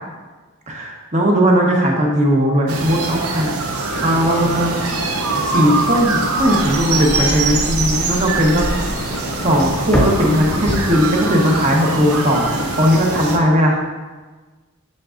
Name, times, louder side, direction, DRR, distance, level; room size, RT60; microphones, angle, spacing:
voice 1, 0.7-3.5 4.0-4.8 5.4-8.7 9.4-13.8, equal, 35° right, -1 dB, 1.1 m, -17 dB
sound 1, 2.7-13.4, right 3 dB, 90° right, 0.7 m, -23 dB
Idling, 3.9-13.5, left 2 dB, 70° left, 0.9 m, -34 dB
sound 2, 7.5-11.6 12.0-12.5, equal, 5° left, 0.9 m, -26 dB
7.6 x 7.3 x 2.6 m, 1.3 s
head